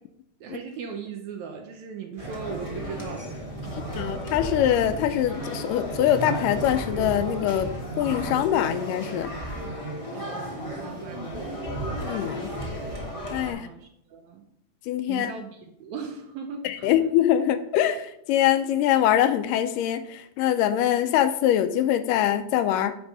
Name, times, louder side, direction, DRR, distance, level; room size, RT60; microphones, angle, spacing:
voice 1, 0.4-3.3 3.6-4.1 10.1-11.8 13.5-14.4 15.1-16.9, right 6 dB, 75° right, 3 dB, 1.8 m, -39 dB
sound 1, 2.2-13.5, equal, 35° left, 0.5 m, -33 dB
voice 2, 4.0-7.7 8.0-9.3 12.0-12.5 13.3-13.7 14.9-15.3 16.6-22.9, left 11 dB, 85° left, 10 dB, 2.2 m, -23 dB
9.9 x 3.6 x 5.5 m, 0.75 s
omnidirectional pair, 3.9 m